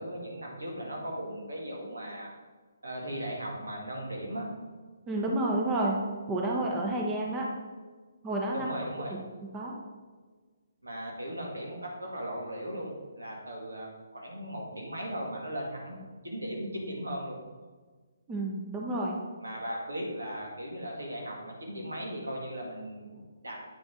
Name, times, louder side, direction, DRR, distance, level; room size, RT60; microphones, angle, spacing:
voice 1, 0.0-2.3 2.8-4.5 8.5-9.1 10.8-17.4 19.4-23.6, equal, 85° right, -2 dB, 2.0 m, -37 dB
voice 2, 5.1-6.0 6.3-7.5 8.2-8.7 9.1-9.2 9.5-9.8 18.3-19.2, right 1 dB, 15° right, -1 dB, 0.9 m, -30 dB
8.3 x 5.2 x 3.7 m, 1.4 s
figure-of-eight pair, 140°, 0 cm